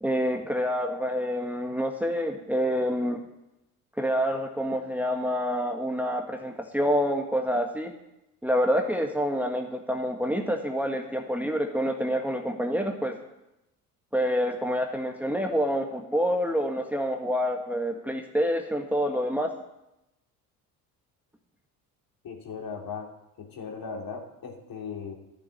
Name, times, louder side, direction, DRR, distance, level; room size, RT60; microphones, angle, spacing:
voice 1, 0.0-3.2 4.0-7.9 8.4-13.2 14.1-19.5, equal, 5° right, 3 dB, 1.6 m, -27 dB
voice 2, 22.2-23.1 23.4-25.2, left 5 dB, 50° left, 2 dB, 3.2 m, -37 dB
11.5 x 7.5 x 9.8 m, 0.91 s
hypercardioid pair, 60°, 46 cm